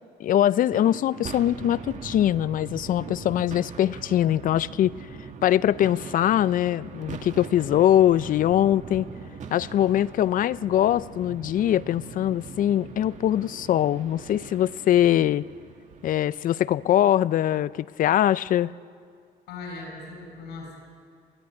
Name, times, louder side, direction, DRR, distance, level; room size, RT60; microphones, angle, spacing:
voice 1, 0.2-4.9 5.4-9.1 9.5-15.4 16.0-18.7, left 11 dB, 55° left, 18 dB, 0.5 m, -22 dB
sound 1, 0.7-17.0, right 5 dB, 45° right, 1.9 m, -41 dB
voice 2, 19.5-20.8, left 3 dB, 85° left, 2 dB, 7.0 m, -39 dB
21.5 x 14.0 x 9.9 m, 2.2 s
cardioid pair, 110°, 17 cm